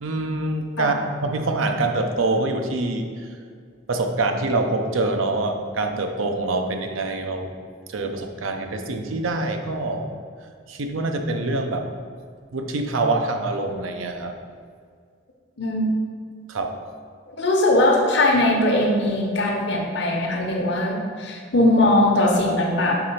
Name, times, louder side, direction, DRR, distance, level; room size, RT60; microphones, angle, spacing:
voice 1, 0.0-3.1 3.9-7.5 7.9-10.1 10.7-11.9 12.5-14.3 16.5-16.7, right 2 dB, 90° right, 5 dB, 0.6 m, -25 dB
voice 2, 15.6-15.9 17.3-22.9, left 1 dB, 60° left, 0 dB, 0.9 m, -20 dB
4.8 x 3.8 x 5.5 m, 2.1 s
head